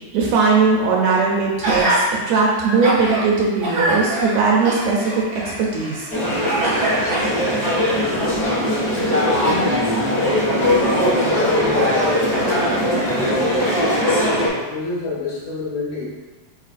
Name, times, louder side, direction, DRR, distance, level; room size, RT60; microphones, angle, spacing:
voice 1, 0.1-6.1, right 4 dB, 75° right, -2 dB, 1.7 m, -19 dB
Gasp, 1.6-2.0 2.6-3.2 3.6-6.1 6.6-7.7 8.3-8.4, right 1 dB, 60° right, 1.1 m, -24 dB
sound 1, 6.1-14.5, left 1 dB, 40° left, 0.5 m, -20 dB
voice 2, 9.0-9.6 10.5-13.8 14.5-16.1, left 2 dB, 70° left, -5 dB, 1.8 m, -29 dB
4.7 x 4.2 x 2.5 m, 1.2 s
omnidirectional pair, 3.5 m